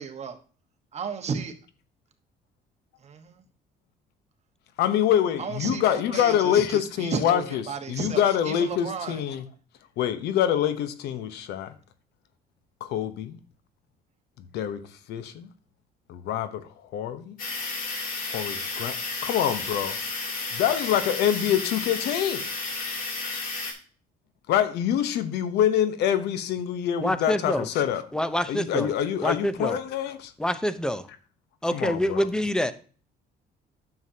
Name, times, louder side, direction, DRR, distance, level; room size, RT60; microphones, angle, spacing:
voice 1, 0.0-0.3 0.9-1.5 3.0-3.4 5.4-9.2, right 6 dB, 40° right, 1.3 m, -34 dB
voice 2, 4.8-7.6 7.9-9.4 10.0-11.7 12.8-13.4 14.4-14.8 15.1-15.5 16.1-17.4 18.3-20.0 20.5-22.5 24.5-28.0 28.5-30.3 31.7-32.3, left 10 dB, 80° left, 0.9 m, -25 dB
sound 1, 17.4-23.7, left 3 dB, 55° left, 2.8 m, -32 dB
voice 3, 27.0-27.7 28.1-28.9 29.2-29.8 30.4-31.1 31.6-32.7, equal, 5° left, 0.7 m, -26 dB
9.6 x 6.9 x 2.8 m
cardioid pair, 110°, 17 cm